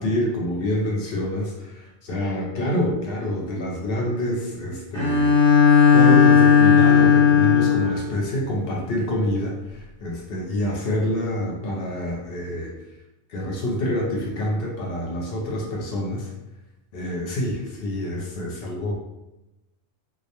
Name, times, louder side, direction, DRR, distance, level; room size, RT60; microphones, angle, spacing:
voice 1, 0.0-5.3 5.9-12.7 13.3-16.3 16.9-19.0, left 1 dB, 65° left, -2 dB, 0.7 m, -27 dB
Bowed string instrument, 4.9-8.1, left 7 dB, 75° right, 0.9 m, -15 dB
2.3 x 2.1 x 2.8 m, 0.95 s
omnidirectional pair, 1.2 m